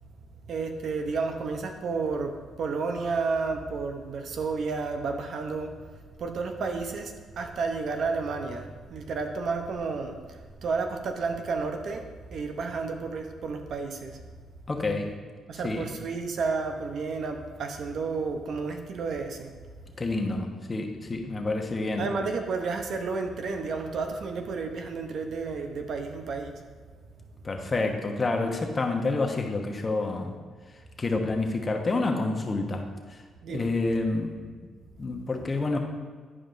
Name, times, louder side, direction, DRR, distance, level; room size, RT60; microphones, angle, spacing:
voice 1, 0.5-5.7 6.2-14.2 15.5-19.5 22.0-26.6 33.4-33.7, right 4 dB, 65° right, 5 dB, 0.7 m, -31 dB
voice 2, 14.7-15.1 15.6-15.9 20.0-22.1 27.4-30.4 31.0-33.2 33.5-34.3 35.0-35.8, left 3 dB, 30° left, 3 dB, 0.9 m, -28 dB
11.0 x 4.9 x 2.6 m, 1.5 s
cardioid pair, 90°, 0 cm